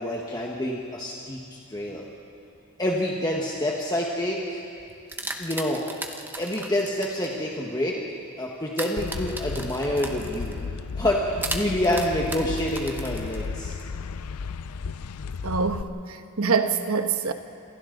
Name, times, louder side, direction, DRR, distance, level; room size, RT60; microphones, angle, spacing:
voice 1, 0.0-2.1 2.8-4.6 5.4-5.9 6.4-8.0 8.4-10.6 10.9-13.8, left 1 dB, 15° left, 1.5 m, -27 dB
sound 1, 4.9-7.3 8.7-10.6 11.4-13.8, right 2 dB, 10° right, 1.0 m, -36 dB
sound 2, 9.0-15.8, left 5 dB, 90° left, 0.5 m, -34 dB
voice 2, 15.4-17.3, right 5 dB, 70° right, 1.1 m, -25 dB
27.5 x 27.0 x 4.0 m
head